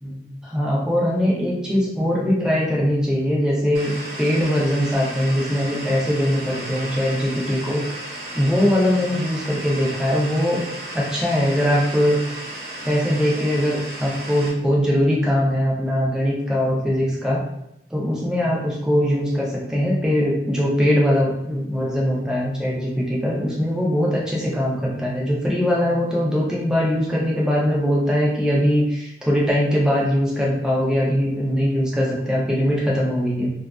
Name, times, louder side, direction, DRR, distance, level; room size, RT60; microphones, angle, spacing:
voice 1, 0.0-7.8 8.3-10.6 10.9-12.2 12.8-17.4 17.9-33.5, equal, 5° right, -5 dB, 0.6 m, -21 dB
sound 1, 3.7-14.5, right 1 dB, 55° right, 0.6 m, -34 dB
2.8 x 2.4 x 2.3 m, 0.82 s
head